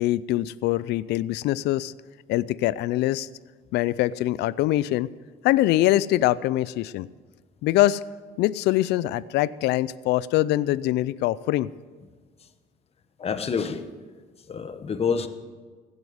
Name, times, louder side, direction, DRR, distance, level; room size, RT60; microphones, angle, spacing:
voice 1, 0.0-1.9 2.3-3.3 3.7-5.1 5.4-7.1 7.6-8.0 8.4-11.7, left 15 dB, 80° left, 19 dB, 0.4 m, -23 dB
voice 2, 13.2-13.8 14.5-15.3, left 6 dB, 35° left, 10 dB, 1.1 m, -27 dB
16.0 x 8.1 x 7.9 m, 1.5 s
cardioid pair, 110°, 17 cm